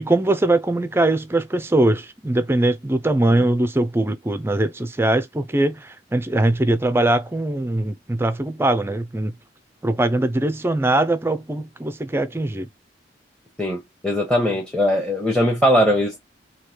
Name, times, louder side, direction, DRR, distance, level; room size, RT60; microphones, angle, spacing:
voice 1, 0.0-9.4 9.8-12.7, right 2 dB, 15° right, 0.4 m, -21 dB
voice 2, 13.6-16.2, equal, 5° left, 0.9 m, -20 dB
3.1 x 2.8 x 4.3 m
head